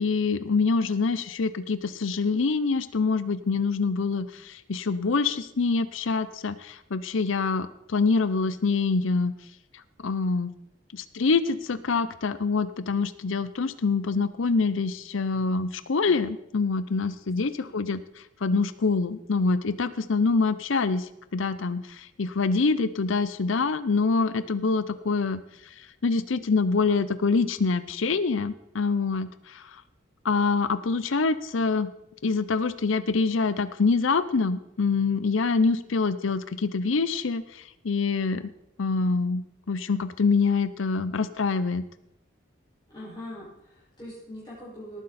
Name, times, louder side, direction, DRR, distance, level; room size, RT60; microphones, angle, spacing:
voice 1, 0.0-9.3 10.0-10.5 10.9-18.0 18.4-25.4 26.0-29.6 30.2-31.9 32.2-38.5 38.8-41.8, left 4 dB, 75° left, 13 dB, 0.6 m, -25 dB
voice 2, 17.3-17.8 35.5-36.0 42.9-45.0, left 1 dB, 20° left, -9 dB, 5.5 m, -43 dB
18.5 x 9.8 x 4.2 m, 0.86 s
head